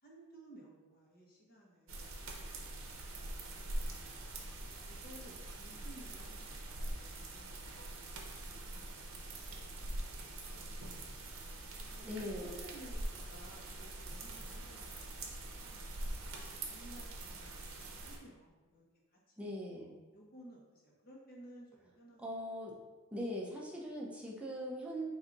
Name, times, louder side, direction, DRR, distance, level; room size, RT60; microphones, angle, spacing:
voice 1, 0.0-2.2 3.0-4.6 4.9-6.5 6.9-10.9 11.9-14.9 15.1-16.1 16.7-18.9 19.1-19.9 20.1-22.5, right 1 dB, 45° left, -3 dB, 1.1 m, -58 dB
sound 1, 1.9-18.2, right 1 dB, 65° right, 0.7 m, -44 dB
voice 2, 12.0-12.5 19.4-20.0 22.2-22.7 23.1-25.1, equal, 5° right, -4 dB, 0.6 m, -41 dB
4.8 x 2.7 x 3.9 m, 1.2 s
head